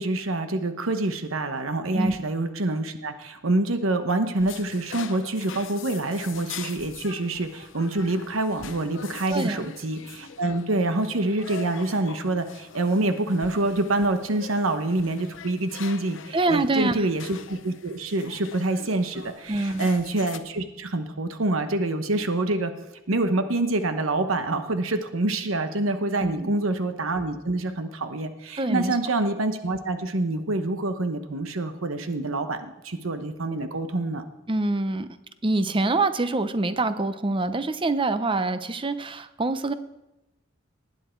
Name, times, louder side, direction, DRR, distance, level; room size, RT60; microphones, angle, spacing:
voice 1, 0.0-22.7 23.1-34.2, right 2 dB, 90° right, 8 dB, 1.0 m, -26 dB
sound 1, 4.4-20.4, left 7 dB, 65° left, 0.8 m, -43 dB
voice 2, 16.3-17.0 19.5-19.9 26.2-26.6 28.6-28.9 34.5-35.1 35.4-39.7, right 2 dB, 25° right, 12 dB, 0.7 m, -25 dB
19.0 x 9.3 x 4.5 m, 0.95 s
head